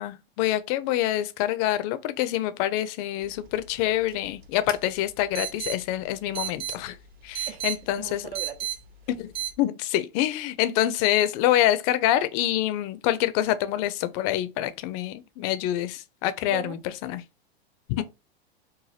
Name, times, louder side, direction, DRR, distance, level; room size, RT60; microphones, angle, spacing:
voice 1, 0.0-7.0 7.2-8.2 9.1-9.3 9.6-17.2 18.0-18.1, left 13 dB, 35° left, 0.4 m, -26 dB
sound 1, 3.2-9.5, right 10 dB, 30° right, 0.6 m, -37 dB
voice 2, 8.0-8.7 16.4-16.8 18.0-18.1, right 9 dB, 70° right, 0.8 m, -39 dB
2.6 x 2.2 x 3.2 m
hypercardioid pair, 115°, 32 cm